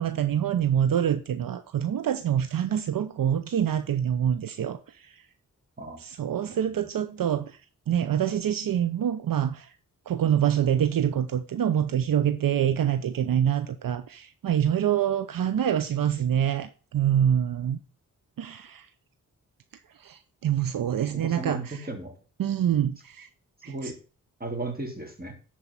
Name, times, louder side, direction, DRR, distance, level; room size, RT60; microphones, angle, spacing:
voice 1, 0.0-5.2 6.0-7.6 7.9-9.7 10.1-17.8 18.4-18.9 20.0-21.8 22.4-23.3 23.6-23.9, right 9 dB, 70° right, 0.7 m, -26 dB
voice 2, 21.2-22.1 23.7-24.0 24.4-25.3, right 2 dB, 25° right, 3.3 m, -34 dB
11.0 x 4.6 x 5.5 m
cardioid pair, 50°, 35 cm